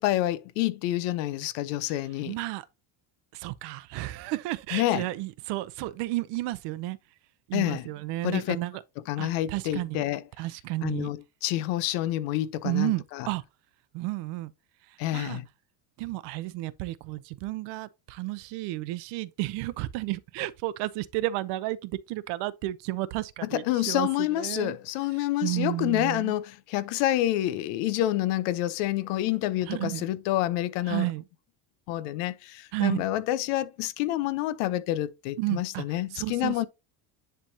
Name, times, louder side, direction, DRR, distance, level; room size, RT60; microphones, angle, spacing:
voice 1, 0.0-2.4 4.7-5.1 7.5-7.8 8.2-8.6 9.1-10.2 10.8-13.3 15.0-15.5 23.5-31.1 31.9-36.7, left 14 dB, 80° left, 0.8 m, -28 dB
voice 2, 1.9-2.7 3.3-7.0 7.5-8.8 9.2-10.0 10.4-11.1 12.6-13.4 13.9-14.5 15.1-15.4 16.0-24.8 25.1-26.3 29.6-30.1 30.9-31.2 32.7-33.0 35.4-35.8 36.1-36.7, right 18 dB, 70° right, 0.7 m, -32 dB
10.0 x 3.4 x 2.7 m
cardioid pair, 160°, 43 cm